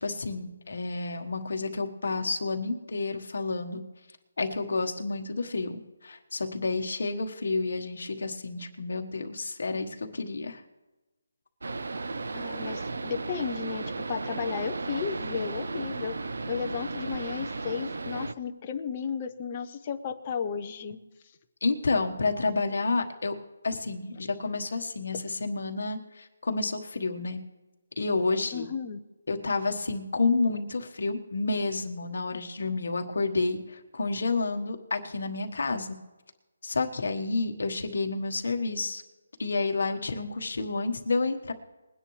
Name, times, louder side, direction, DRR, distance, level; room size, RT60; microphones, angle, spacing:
voice 1, 0.0-3.8 4.4-10.6 21.6-23.3 23.6-27.4 28.0-28.7 29.3-36.0 36.6-39.0 39.4-41.5, left 3 dB, 50° left, 4 dB, 1.3 m, -30 dB
sound 1, 11.6-18.3, right 3 dB, 55° right, 0.5 m, -35 dB
voice 2, 12.3-16.2 16.5-21.0 28.5-29.0, left 6 dB, 15° left, 5 dB, 0.5 m, -34 dB
21.5 x 10.0 x 3.2 m, 1.1 s
hypercardioid pair, 180°, 0 cm